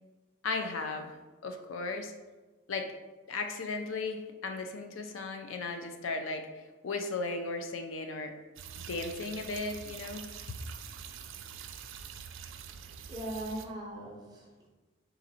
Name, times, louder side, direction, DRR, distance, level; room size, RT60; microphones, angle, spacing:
voice 1, 0.4-1.1 1.4-2.1 2.7-2.9 3.3-8.3 8.8-10.6, left 3 dB, 80° left, 5 dB, 0.4 m, -36 dB
sound 1, 8.6-13.7, right 7 dB, 75° right, 0.3 m, -45 dB
voice 2, 12.8-14.7, right 1 dB, 20° right, -2 dB, 0.7 m, -40 dB
3.9 x 2.5 x 4.2 m, 1.2 s
head